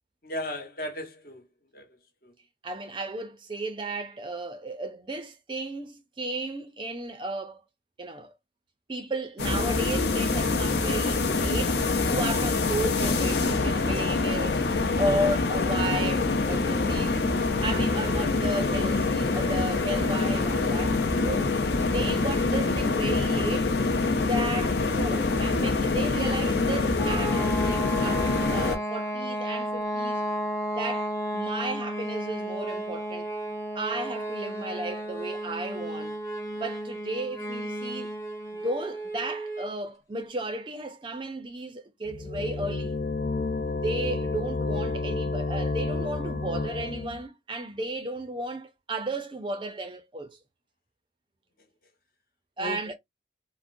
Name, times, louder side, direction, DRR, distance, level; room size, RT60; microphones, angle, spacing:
voice 1, 0.2-1.4 1.7-1.9 2.2-2.3 15.1-15.3 52.6-53.0, left 1 dB, 50° left, 1.0 m, -35 dB
voice 2, 2.6-7.6 8.0-8.4 8.9-11.8 12.1-14.7 15.0-17.3 17.6-21.5 21.9-23.7 24.3-30.2 30.8-33.3 33.7-36.2 36.6-38.1 38.5-43.0 43.7-50.4 52.6-52.9, right 2 dB, 25° right, 0.4 m, -34 dB
sound 1, 9.4-28.8, left 3 dB, 75° left, 0.7 m, -25 dB
sound 2, 27.0-39.8, right 1 dB, 20° left, 0.8 m, -33 dB
sound 3, 42.1-47.2, left 3 dB, 35° left, 0.4 m, -30 dB
3.6 x 2.1 x 2.5 m
head